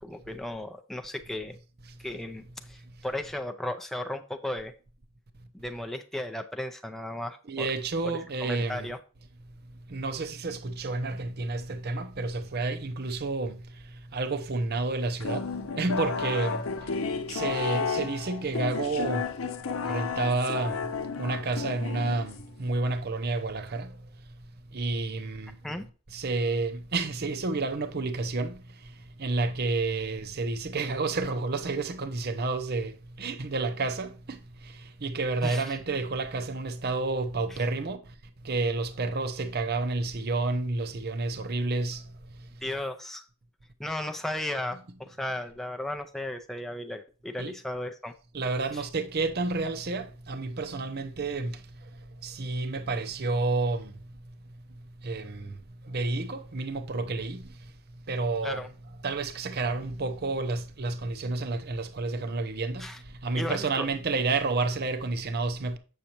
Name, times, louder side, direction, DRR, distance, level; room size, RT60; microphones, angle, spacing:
voice 1, 0.0-1.6 2.0-4.7 5.5-7.7 8.0-8.1 8.4-9.0 25.6-25.9 35.4-35.8 37.5-37.6 42.6-43.3 43.8-48.1 48.7-48.8 58.4-58.7 62.8-63.0 63.3-63.9, left 1 dB, ahead, 0.4 m, -35 dB
voice 2, 7.5-8.9 9.9-13.6 14.1-15.4 15.8-19.3 19.8-20.9 21.2-24.0 24.7-25.6 26.1-28.9 29.2-38.0 38.4-42.0 47.4-47.5 48.3-51.6 52.2-53.9 55.0-55.6 55.8-57.5 58.1-58.6 59.0-62.9 63.2-65.8, right 3 dB, 45° right, 0.7 m, -30 dB
sound 1, 15.2-22.6, left 5 dB, 65° left, 0.7 m, -32 dB
8.1 x 6.4 x 2.9 m
head